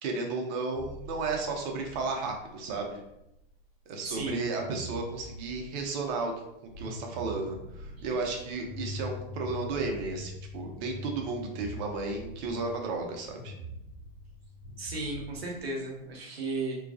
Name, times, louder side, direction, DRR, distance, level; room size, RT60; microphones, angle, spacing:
voice 1, 0.0-3.0 3.9-6.3 6.8-13.5, right 3 dB, 50° right, 2 dB, 0.6 m, -33 dB
sound 1, 0.7-3.8 4.0-16.1, right 1 dB, 70° left, 0.6 m, -46 dB
voice 2, 4.1-4.5 14.8-16.8, right 2 dB, 85° right, -1 dB, 0.7 m, -34 dB
sound 2, 8.6-15.5, left 3 dB, 5° left, 0.7 m, -45 dB
2.3 x 2.2 x 2.4 m, 0.84 s
hypercardioid pair, 95°, 30 cm